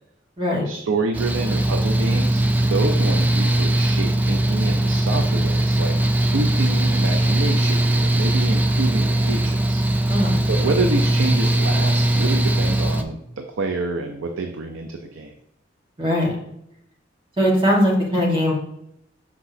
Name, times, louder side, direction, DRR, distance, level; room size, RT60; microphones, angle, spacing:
voice 1, 0.6-6.0 6.3-9.8 10.5-15.3, right 3 dB, 85° right, 4 dB, 0.6 m, -27 dB
Mechanical fan, 1.1-13.0, right 1 dB, 10° right, 0.3 m, -20 dB
voice 2, 16.0-16.3 17.4-18.5, equal, 25° right, -3 dB, 1.6 m, -20 dB
6.0 x 5.9 x 2.7 m, 0.76 s
head